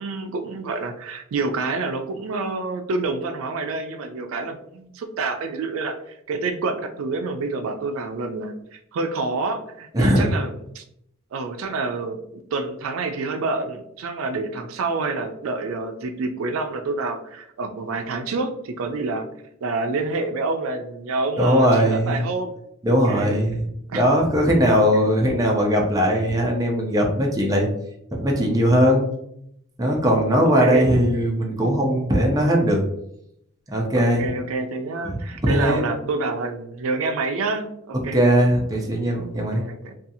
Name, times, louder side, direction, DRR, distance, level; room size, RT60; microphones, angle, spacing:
voice 1, 0.0-6.0 6.3-10.8 11.3-19.2 19.6-22.5 22.9-23.4 23.9-24.2 24.9-25.1 30.4-30.9 34.0-38.3 39.6-40.0, right 3 dB, 90° right, 6 dB, 0.4 m, -28 dB
voice 2, 9.9-10.3 21.4-22.2 22.8-23.6 23.9-27.7 28.1-29.1 29.8-32.8 33.7-34.3 35.0-35.8 38.1-39.6, equal, 20° right, 0 dB, 0.5 m, -19 dB
2.7 x 2.3 x 2.6 m, 0.75 s
head